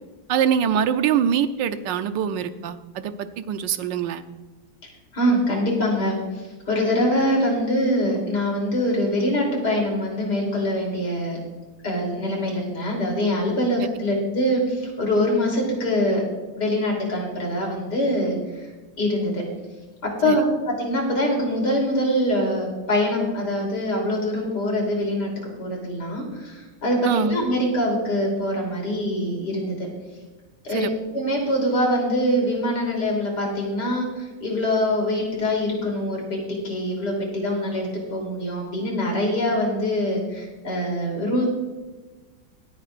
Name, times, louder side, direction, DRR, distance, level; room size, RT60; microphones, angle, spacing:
voice 1, 0.3-4.2 13.8-13.9 20.2-20.4 27.0-27.4 30.7-30.9, right 8 dB, 80° right, 10 dB, 1.4 m, -24 dB
voice 2, 5.1-11.4 11.8-16.2 16.6-18.4 18.6-18.7 19.0-19.4 20.0-25.3 25.6-29.9 30.6-30.9 31.1-41.5, left 1 dB, 60° left, -1 dB, 3.8 m, -24 dB
23.0 x 8.8 x 2.5 m, 1.2 s
omnidirectional pair, 2.0 m